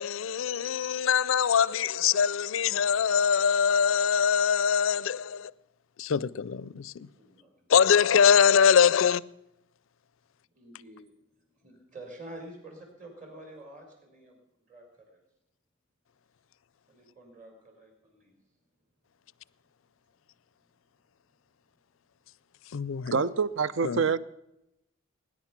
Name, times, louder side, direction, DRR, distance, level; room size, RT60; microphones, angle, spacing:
voice 1, 0.0-5.5 6.0-7.1 7.7-9.2 22.7-23.1 23.8-24.0, left 7 dB, 70° left, 0.4 m, -23 dB
voice 2, 7.1-7.7 10.5-11.1 11.4-14.4 14.7-15.2 16.9-18.3, right 1 dB, 40° right, 4.1 m, -48 dB
voice 3, 23.1-24.2, right 5 dB, 60° right, 0.5 m, -26 dB
19.0 x 10.0 x 5.9 m
head